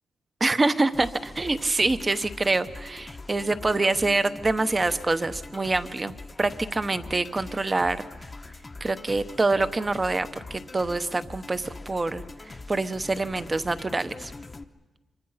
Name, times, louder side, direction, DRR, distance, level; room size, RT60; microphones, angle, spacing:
voice 1, 0.4-8.0 8.8-14.3, right 3 dB, 25° right, 12 dB, 0.9 m, -26 dB
sound 1, 0.9-14.6, left 3 dB, 25° left, 0.9 m, -42 dB
25.5 x 23.5 x 5.7 m, 1.1 s
wide cardioid pair, 115°, 0 cm